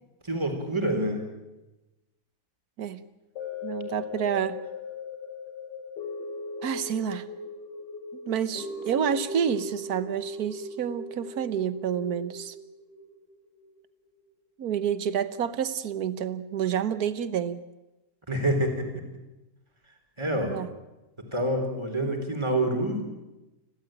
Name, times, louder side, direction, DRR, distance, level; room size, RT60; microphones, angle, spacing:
voice 1, 0.2-1.3 18.3-19.0 20.2-20.6 21.2-23.1, right 1 dB, 15° right, 4 dB, 3.8 m, -27 dB
sound 1, 3.4-13.7 14.2-14.3, left 2 dB, 90° left, 3.8 m, -39 dB
voice 2, 3.6-4.6 6.6-7.3 8.3-12.5 14.6-17.6 20.4-20.7, right 8 dB, 65° right, 14 dB, 1.5 m, -29 dB
29.5 x 13.0 x 9.0 m, 1.0 s
omnidirectional pair, 1.8 m